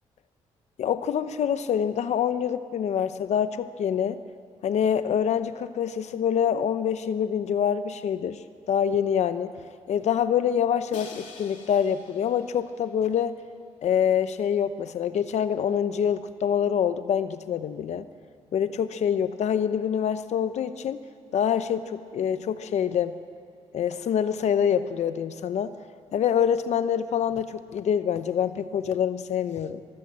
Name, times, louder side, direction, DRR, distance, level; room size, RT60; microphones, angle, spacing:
voice 1, 0.8-4.2 4.6-9.5 9.9-13.4 13.8-18.1 18.5-21.0 21.3-23.2 23.7-25.8 26.1-29.8, left 8 dB, 65° left, 12 dB, 0.8 m, -26 dB
Crash cymbal, 10.9-12.9, left 5 dB, 85° left, 3.0 m, -47 dB
23.5 x 19.5 x 7.5 m, 2.2 s
cardioid pair, 95°, 12 cm